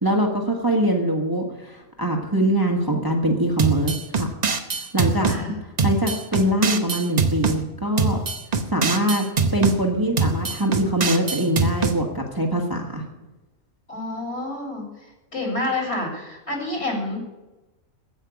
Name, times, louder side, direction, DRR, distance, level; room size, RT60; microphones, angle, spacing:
voice 1, 0.0-4.3 4.9-5.3 5.8-8.2 8.7-9.2 9.5-13.0, right 1 dB, 15° right, 1 dB, 1.5 m, -23 dB
sound 1, 3.6-5.4 5.8-7.6 8.0-9.8 10.2-12.0, right 4 dB, 35° right, 1.0 m, -23 dB
voice 2, 5.3-5.6 13.9-14.8 15.3-17.2, left 2 dB, 50° left, 1 dB, 4.2 m, -28 dB
16.0 x 5.7 x 9.4 m, 1.0 s
omnidirectional pair, 1.4 m